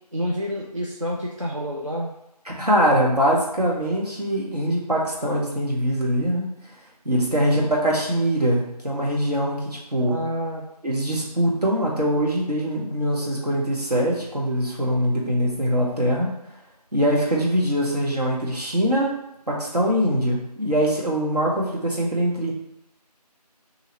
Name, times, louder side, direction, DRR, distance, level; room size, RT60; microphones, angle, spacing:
voice 1, 0.1-2.1 7.4-7.7 10.0-10.6, equal, 50° right, -3 dB, 0.4 m, -28 dB
voice 2, 2.5-6.5 7.0-10.2 10.8-16.3 16.9-19.1 19.5-22.5, equal, 70° right, -3 dB, 1.2 m, -23 dB
2.8 x 2.8 x 4.2 m, 0.88 s
figure-of-eight pair, 180°, 21 cm